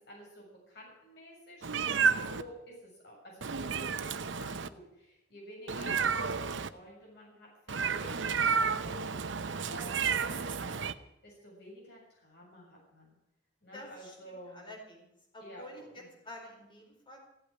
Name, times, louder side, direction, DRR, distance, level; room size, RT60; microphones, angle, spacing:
voice 1, 0.1-8.3 8.6-10.8 11.2-13.2 13.6-14.6 15.4-16.1, equal, 60° left, -3 dB, 7.1 m, -50 dB
Meow, 1.6-2.4 3.4-4.7 5.7-6.7 7.7-10.9, right 6 dB, 70° right, 0.7 m, -31 dB
voice 2, 13.7-17.2, left 1 dB, 25° left, 0 dB, 4.5 m, -49 dB
15.5 x 8.5 x 10.0 m, 0.85 s
head